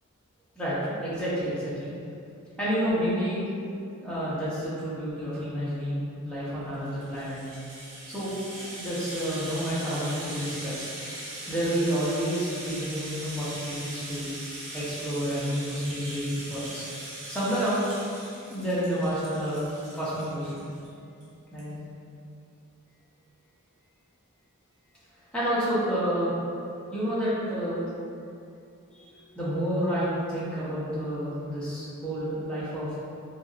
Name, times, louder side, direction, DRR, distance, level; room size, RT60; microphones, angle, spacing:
voice 1, 0.6-1.9 2.6-3.4 4.0-7.4 8.1-8.3 8.8-10.9 11.5-14.3 14.7-16.8 17.3-17.8 18.5-20.6 21.5-21.8 25.3-26.3 26.9-27.8 28.9-33.0, equal, 5° left, -11 dB, 0.6 m, -29 dB
Rattle (instrument), 6.7-20.9 21.2-21.3 21.6-21.7, right 1 dB, 85° right, 0.7 m, -40 dB
2.8 x 2.5 x 2.4 m, 2.5 s
head